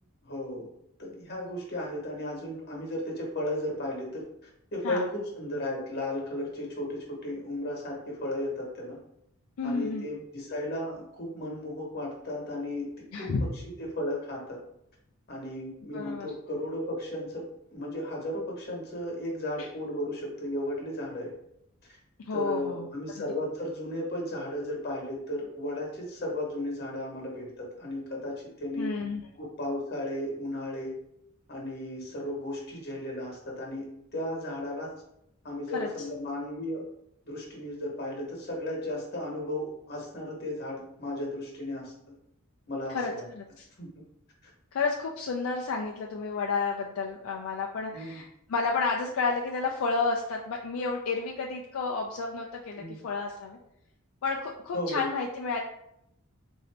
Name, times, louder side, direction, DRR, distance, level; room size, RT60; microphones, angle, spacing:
voice 1, 0.2-0.7 1.0-4.2 4.7-9.0 9.6-12.9 13.2-13.3 13.8-14.6 15.3-21.3 22.3-28.9 29.4-30.9 31.5-34.9 35.4-36.8 37.3-42.1 42.7-43.3 43.8-44.0 44.4-44.5 47.9-48.2 52.8-53.0 54.7-55.1, left 1 dB, 50° left, -1 dB, 1.1 m, -35 dB
voice 2, 9.6-10.0 13.1-13.4 15.9-16.3 19.6-19.7 22.3-22.9 28.8-29.2 35.7-35.9 42.9-43.7 44.7-53.6 54.2-55.6, left 4 dB, 75° left, 0 dB, 0.4 m, -31 dB
3.8 x 2.6 x 3.2 m, 0.79 s
head